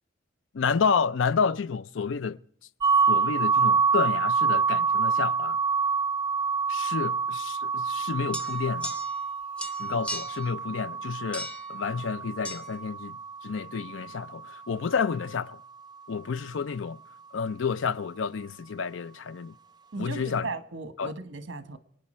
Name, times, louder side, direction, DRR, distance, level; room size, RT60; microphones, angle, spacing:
voice 1, 0.5-2.4 3.1-5.6 6.7-9.0 9.8-13.2 13.4-15.6 16.1-17.0 17.3-19.5 20.0-20.5 21.0-21.1, left 5 dB, 90° left, 0.5 m, -30 dB
sound 1, 2.8-14.5, right 5 dB, 20° right, 0.4 m, -27 dB
sound 2, 8.3-9.3 9.6-10.5 11.3-11.7 12.4-12.6, left 1 dB, 5° left, 0.7 m, -37 dB
voice 2, 19.9-21.8, right 3 dB, 80° right, 1.3 m, -36 dB
27.0 x 9.2 x 4.4 m
head